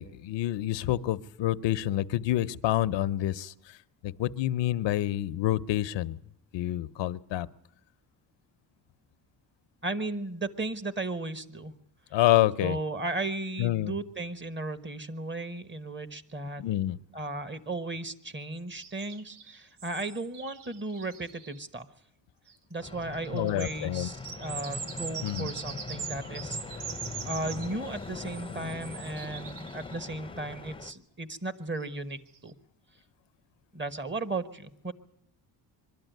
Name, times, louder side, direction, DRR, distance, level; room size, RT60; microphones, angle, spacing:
voice 1, 0.0-3.5 4.0-6.2 6.5-7.5 12.1-12.8 13.6-13.9 16.6-17.0 23.3-24.1 25.2-25.5, left 14 dB, 85° left, 15 dB, 0.7 m, -27 dB
voice 2, 9.8-11.7 12.6-16.6 17.1-21.9 22.7-26.6 27.2-32.5 33.7-34.9, right 2 dB, 25° right, 12 dB, 1.3 m, -35 dB
sound 1, 18.7-21.6 22.5-22.6 22.8-30.0 31.8-31.9 32.3-32.5, right 6 dB, 70° right, 1.2 m, -42 dB
sound 2, 22.8-30.9, left 4 dB, 10° left, 0.7 m, -41 dB
23.0 x 12.5 x 9.2 m, 0.75 s
cardioid pair, 95°, 43 cm